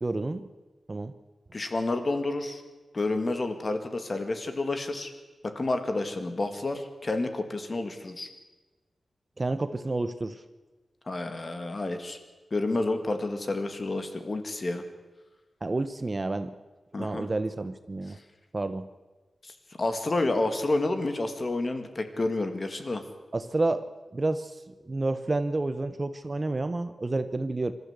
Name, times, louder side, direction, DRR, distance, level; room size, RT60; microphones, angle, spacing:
voice 1, 0.0-0.5 0.9-1.1 9.4-10.4 15.6-16.5 17.0-18.2 18.5-18.9 23.3-23.9 24.1-24.6 24.8-27.7, right 2 dB, 25° right, 11 dB, 0.7 m, -29 dB
voice 2, 1.5-2.6 2.9-5.1 5.4-8.3 11.1-12.2 12.5-14.8 16.9-17.3 19.4-23.0, left 2 dB, 30° left, 8 dB, 2.0 m, -29 dB
25.5 x 13.5 x 8.1 m, 1.2 s
wide cardioid pair, 170°, 0 cm